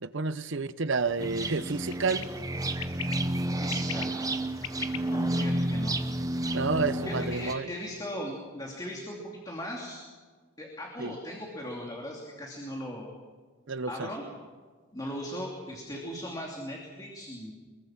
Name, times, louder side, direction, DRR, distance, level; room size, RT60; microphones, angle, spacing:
voice 1, 0.0-2.3 6.5-7.7 11.0-11.1 13.7-14.1, right 4 dB, 60° right, 13 dB, 0.8 m, -30 dB
sound 1, 0.9-7.2, left 8 dB, 85° left, 1.1 m, -44 dB
sound 2, 1.2-7.5, right 1 dB, 15° right, 1.0 m, -31 dB
voice 2, 3.2-4.2 5.1-6.0 6.8-10.0 10.6-13.1 13.9-14.2 14.9-17.5, equal, 20° left, -1 dB, 2.8 m, -38 dB
24.5 x 22.0 x 6.0 m, 1.5 s
head